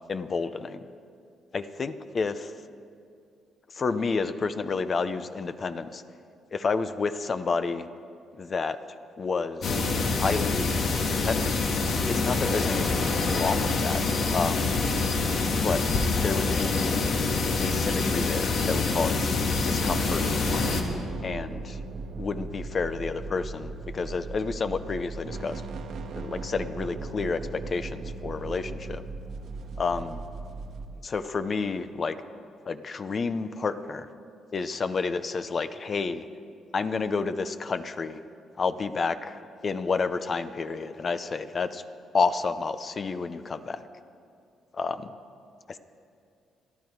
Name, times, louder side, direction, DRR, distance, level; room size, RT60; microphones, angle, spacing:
voice 1, 0.1-0.8 1.5-2.5 3.7-6.0 6.5-7.9 8.3-8.8 9.2-9.8 10.2-10.7 11.1-11.6 12.1-14.0 14.3-14.7 15.6-15.8 16.1-17.0 17.5-20.2 21.2-21.8 22.2-25.6 26.2-29.0 29.8-30.2 31.0-32.2 32.7-34.1 34.5-36.3 36.7-38.2 38.6-41.8 42.1-43.9 44.7-45.1 45.7-45.8, left 4 dB, 40° left, 11 dB, 0.7 m, -30 dB
sound 1, 9.6-20.8, left 3 dB, 65° left, 1.8 m, -26 dB
sound 2, 19.7-30.9, right 3 dB, 70° right, 1.4 m, -38 dB
27.0 x 10.5 x 4.7 m, 2.4 s
cardioid pair, 90°, 0 cm